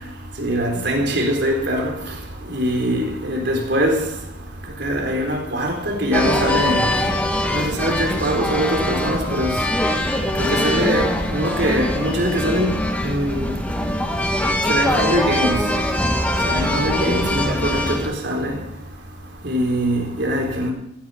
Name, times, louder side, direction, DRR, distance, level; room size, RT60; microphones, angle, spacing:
voice 1, 0.4-1.9 2.5-4.0 4.8-6.9 7.5-9.5 10.4-12.8 13.0-13.5 14.7-15.6 16.5-18.6 19.4-20.7, equal, 65° right, 4.0 m, -22 dB
sound 1, 6.1-18.1, left 1 dB, 10° left, 1.9 m, -22 dB
15.5 x 10.0 x 7.1 m
head